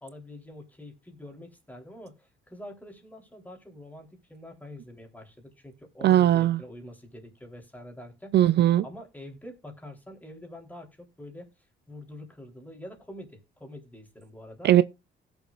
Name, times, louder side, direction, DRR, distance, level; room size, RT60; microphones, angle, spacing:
voice 1, 0.0-8.4 8.8-11.5 11.9-14.7, left 1 dB, 10° left, 3.5 m, -45 dB
voice 2, 6.0-6.6 8.3-8.8 14.6-14.8, right 12 dB, 60° right, 0.4 m, -19 dB
17.0 x 7.1 x 2.5 m
cardioid pair, 90°, 20 cm